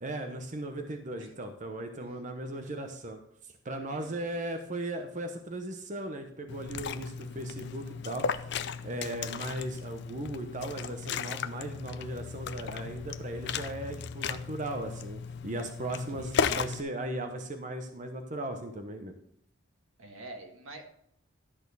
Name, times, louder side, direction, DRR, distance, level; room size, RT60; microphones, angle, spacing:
voice 1, 0.0-3.2 3.6-8.5 8.8-19.1, right 1 dB, 35° right, 6 dB, 0.8 m, -37 dB
voice 2, 2.0-2.9 3.9-4.4 15.9-16.5 20.0-20.8, right 2 dB, 90° right, 3 dB, 1.8 m, -49 dB
Liquid, 6.5-16.8, left 6 dB, 55° left, 0.5 m, -35 dB
12.5 x 4.3 x 6.8 m, 0.71 s
head